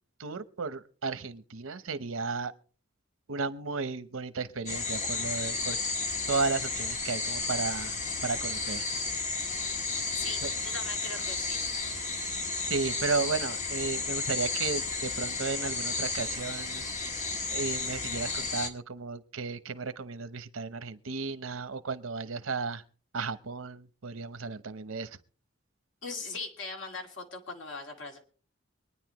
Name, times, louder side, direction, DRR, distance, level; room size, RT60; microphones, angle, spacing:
voice 1, 0.2-2.5 3.3-5.8 6.3-8.0 8.2-8.9 10.4-10.5 12.7-17.1 17.5-22.8 23.1-25.2, right 4 dB, 85° right, 13 dB, 0.9 m, -34 dB
sound 1, 4.7-18.7, left 3 dB, 35° left, 1.5 m, -33 dB
voice 2, 10.1-11.6 26.0-28.2, left 3 dB, 65° left, 2 dB, 2.4 m, -40 dB
25.0 x 9.8 x 3.1 m, 0.41 s
head